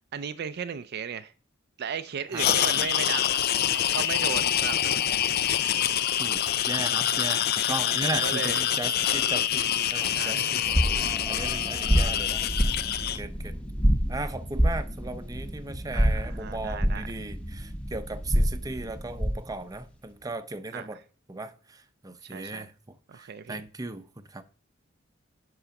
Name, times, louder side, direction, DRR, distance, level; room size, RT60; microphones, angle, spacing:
voice 1, 0.1-1.3 1.8-3.4 3.9-5.3 8.1-8.7 10.0-10.5 15.9-17.1 20.7-21.0 22.2-22.7 23.1-23.6, right 7 dB, 55° right, 0.4 m, -36 dB
voice 2, 2.3-2.9 6.2-10.7 11.0-12.8 13.1-13.6 14.1-21.0 21.3-24.4, right 2 dB, 20° right, 0.7 m, -37 dB
sound 1, 2.4-13.2, left 10 dB, 50° left, 0.4 m, -26 dB
sound 2, 3.7-10.8, left 3 dB, 75° left, 1.9 m, -47 dB
sound 3, 10.6-19.5, equal, 5° left, 1.0 m, -27 dB
11.0 x 3.9 x 5.8 m
head